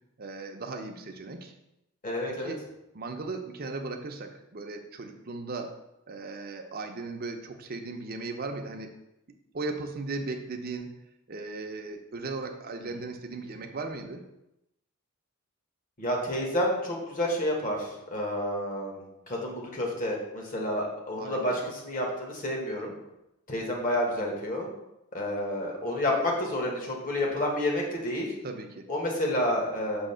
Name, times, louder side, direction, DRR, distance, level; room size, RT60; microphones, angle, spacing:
voice 1, 0.2-1.5 2.3-2.6 2.9-5.7 6.1-8.9 9.3-10.9 11.3-14.2 21.2-21.7 28.4-28.9, right 3 dB, 45° right, 4 dB, 0.7 m, -37 dB
voice 2, 2.0-2.5 16.0-22.9 23.5-24.7 25.1-28.3 28.9-30.1, left 1 dB, 40° left, -1 dB, 1.4 m, -29 dB
6.2 x 2.9 x 5.6 m, 0.88 s
head